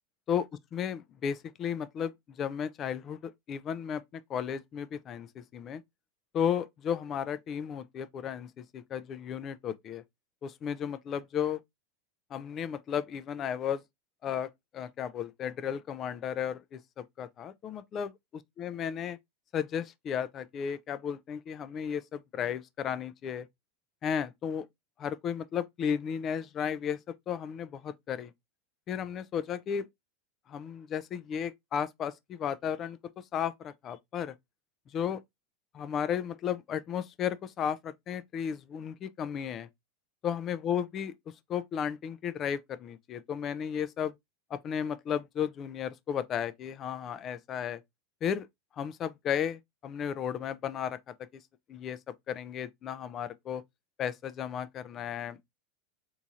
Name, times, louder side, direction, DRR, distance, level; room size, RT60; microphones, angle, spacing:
voice 1, 0.3-5.8 6.3-10.0 10.4-11.6 12.3-13.8 14.2-19.2 19.5-23.5 24.0-24.7 25.0-27.0 27.3-28.3 28.9-29.9 30.5-33.0 33.3-34.4 34.9-35.2 35.7-39.7 40.2-41.1 41.5-44.1 44.5-47.8 48.2-48.5 48.8-51.0 51.7-52.0 52.3-53.6 54.0-55.4, left 8 dB, 35° left, 0.4 m, -34 dB
3.5 x 3.0 x 2.6 m
hypercardioid pair, 110°, 0 cm